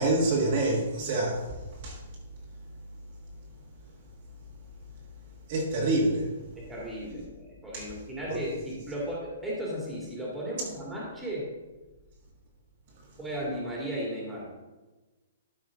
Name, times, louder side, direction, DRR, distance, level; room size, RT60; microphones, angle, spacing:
voice 1, 0.0-1.5 1.8-2.0 5.5-6.3 7.7-7.9 8.3-8.4, right 2 dB, 35° right, -3 dB, 1.6 m, -26 dB
voice 2, 6.6-11.5 13.2-14.5, equal, 5° right, -5 dB, 2.2 m, -35 dB
12.5 x 5.4 x 3.8 m, 1.2 s
hypercardioid pair, 170°, 0 cm